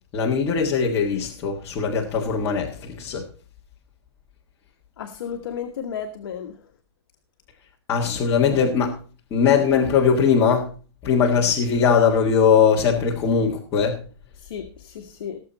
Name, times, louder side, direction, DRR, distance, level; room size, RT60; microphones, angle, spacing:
voice 1, 0.1-3.3 7.9-9.0 9.3-10.7 11.0-14.0, left 6 dB, 15° left, 1.5 m, -20 dB
voice 2, 5.0-6.6 14.4-15.4, left 7 dB, 55° left, 1.4 m, -33 dB
18.5 x 7.3 x 4.1 m
hypercardioid pair, 175°, 14 cm